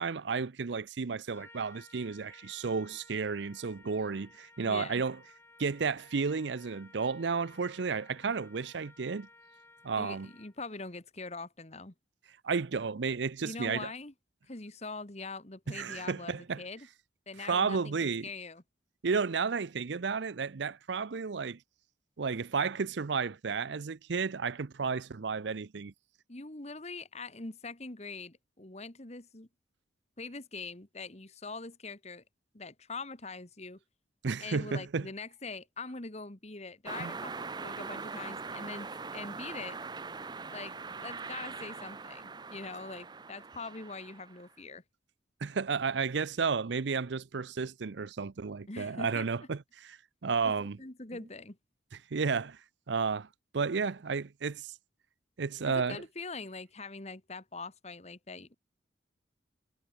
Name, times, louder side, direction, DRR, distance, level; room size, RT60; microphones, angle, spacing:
voice 1, 0.0-5.2 5.6-9.3 9.8-10.3 12.4-13.9 15.7-16.6 17.4-18.3 19.0-21.6 22.2-25.9 34.2-35.1 37.0-37.1 45.4-50.8 52.1-52.6 52.9-53.3 53.5-54.7 55.4-56.0, right 5 dB, 70° right, 0.6 m, -32 dB
Trumpet, 1.3-10.7, left 2 dB, 15° left, 7.8 m, -57 dB
voice 2, 4.6-5.0 10.0-11.9 13.4-14.1 14.5-16.9 17.3-18.6 26.3-29.5 30.2-32.2 32.5-33.8 34.4-39.8 40.5-44.8 48.7-49.3 50.4-51.6 53.8-53.9 55.6-58.5, left 3 dB, 35° left, 1.7 m, -43 dB
sound 1, 36.9-44.5, right 4 dB, 20° right, 0.6 m, -42 dB
head